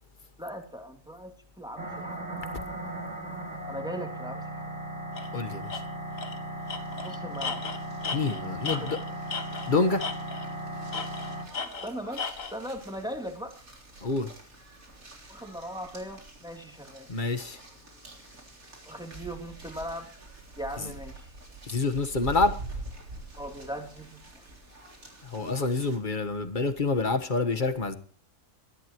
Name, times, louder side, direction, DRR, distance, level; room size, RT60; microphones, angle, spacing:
voice 1, 0.4-2.5 3.7-4.7 7.0-7.6 8.7-8.9 11.8-12.3 12.5-13.5 15.3-17.1 18.8-20.1 20.6-21.3 23.4-24.2, equal, 5° right, 3.1 m, -39 dB
sound 1, 1.8-11.5, right 1 dB, 55° right, 3.9 m, -37 dB
Tools, 5.2-5.3 5.7-5.8 6.2-6.4 6.7-9.7 10.0-10.5 10.9-12.6, left 5 dB, 65° left, 2.0 m, -35 dB
voice 2, 5.3-5.8 8.1-9.0 9.7-10.0 14.0-14.3 17.1-17.6 21.7-22.5 25.2-28.0, left 3 dB, 35° left, 1.4 m, -27 dB
sound 2, 6.8-26.0, right 2 dB, 70° right, 4.1 m, -46 dB
21.5 x 14.5 x 3.1 m
omnidirectional pair, 1.5 m